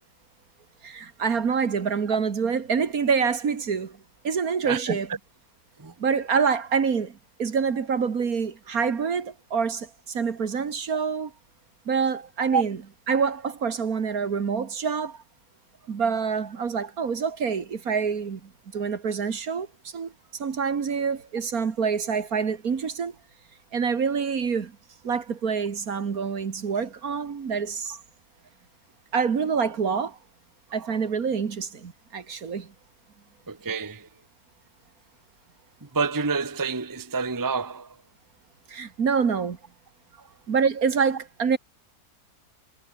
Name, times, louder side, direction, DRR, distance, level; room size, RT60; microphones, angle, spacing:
voice 1, 0.8-4.0 4.2-5.1 6.0-11.3 11.9-12.8 13.1-15.2 15.9-20.1 20.4-23.2 23.7-24.8 25.0-28.0 29.1-30.2 30.7-32.7 38.7-39.6 40.5-41.6, right 6 dB, 60° right, 2.1 m, -26 dB
voice 2, 4.6-5.0 5.8-5.9 12.5-12.6 33.5-34.1 35.9-37.9, right 5 dB, 15° right, 1.0 m, -27 dB
omnidirectional pair, 1.8 m